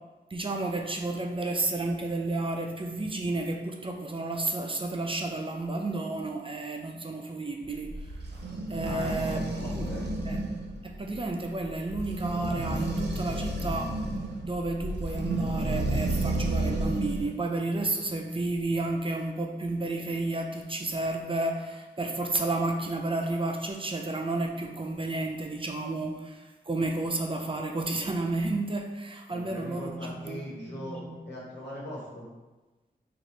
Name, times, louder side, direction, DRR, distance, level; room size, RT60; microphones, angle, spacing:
voice 1, 0.3-8.0 8.7-9.9 10.3-10.4 10.8-14.0 14.4-31.2, right 2 dB, 30° right, 2 dB, 0.5 m, -31 dB
sound 1, 7.6-17.3, right 2 dB, 80° right, 0.6 m, -31 dB
voice 2, 8.8-10.1 29.3-32.3, equal, 80° left, -5 dB, 1.2 m, -40 dB
3.0 x 2.5 x 4.2 m, 1.1 s
cardioid pair, 45°, 17 cm